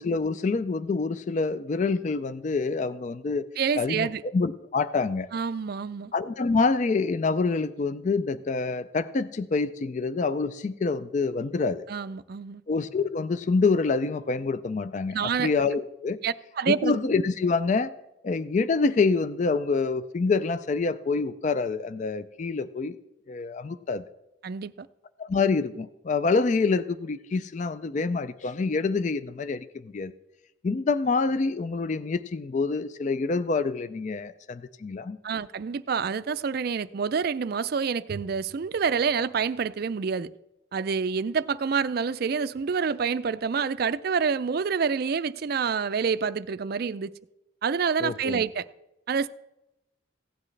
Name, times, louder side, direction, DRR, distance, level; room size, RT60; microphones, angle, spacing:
voice 1, 0.0-3.4 3.7-5.3 6.1-11.8 12.7-16.2 16.7-17.9 18.2-23.0 23.3-24.0 25.2-30.1 30.6-35.2 48.0-48.4, left 4 dB, 35° left, 0.3 m, -26 dB
voice 2, 3.6-4.2 5.3-6.1 11.9-12.6 15.1-15.5 16.2-16.9 24.4-24.9 35.2-40.3 40.7-47.1 47.6-48.7 49.1-49.3, right 6 dB, 50° right, 0.4 m, -27 dB
16.0 x 9.7 x 3.2 m
head